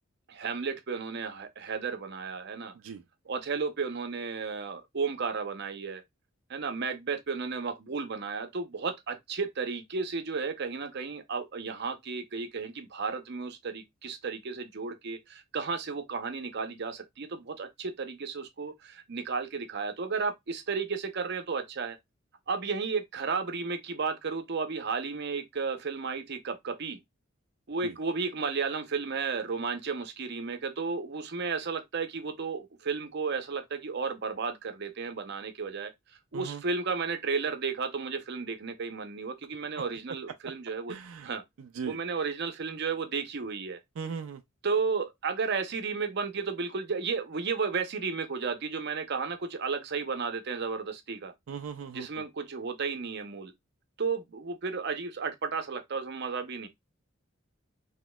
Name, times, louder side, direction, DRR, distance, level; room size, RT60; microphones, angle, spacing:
voice 1, 0.3-2.7 3.3-6.0 6.5-22.0 22.5-27.0 27.7-35.9 36.3-41.0 41.2-41.4 41.9-43.8 44.6-51.3 51.9-53.5 54.0-56.7, right 5 dB, 55° right, 0.7 m, -33 dB
voice 2, 40.9-41.3 41.6-42.0 44.0-44.4 51.5-52.3, right 6 dB, 90° right, 0.4 m, -39 dB
4.0 x 2.8 x 2.2 m
head